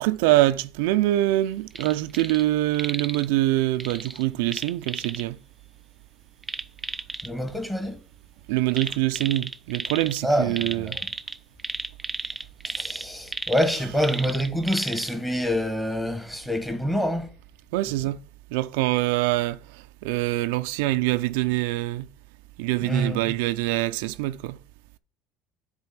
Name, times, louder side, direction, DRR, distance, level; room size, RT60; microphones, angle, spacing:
voice 1, 0.0-5.4 8.5-11.0 17.7-18.2 18.5-22.1 22.6-24.6, right 17 dB, 85° right, 0.4 m, -24 dB
sound 1, 1.7-2.4 2.7-3.3 3.8-5.2 6.4-7.3 8.7-10.2 10.5-15.1 15.6-15.7, right 2 dB, 10° right, 0.4 m, -34 dB
voice 2, 7.2-8.0 10.2-11.0 12.6-17.3 22.8-23.4, equal, 5° left, 1.7 m, -26 dB
9.7 x 4.0 x 5.8 m
supercardioid pair, 105°, 0 cm